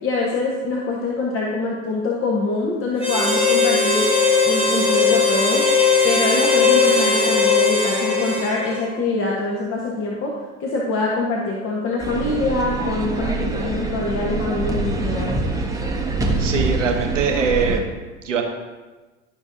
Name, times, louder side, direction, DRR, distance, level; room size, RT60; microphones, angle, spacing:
voice 1, 0.0-4.1 4.4-5.7 6.0-15.4, left 3 dB, 35° left, -3 dB, 1.3 m, -24 dB
Harmonica, 3.0-9.0, left 4 dB, 15° left, 1.9 m, -18 dB
sound 1, 12.0-17.8, right 3 dB, 10° right, 1.0 m, -25 dB
voice 2, 16.4-17.8 18.2-18.4, right 6 dB, 80° right, 3 dB, 1.2 m, -22 dB
12.0 x 5.9 x 2.6 m, 1.2 s
figure-of-eight pair, 80°, 37 cm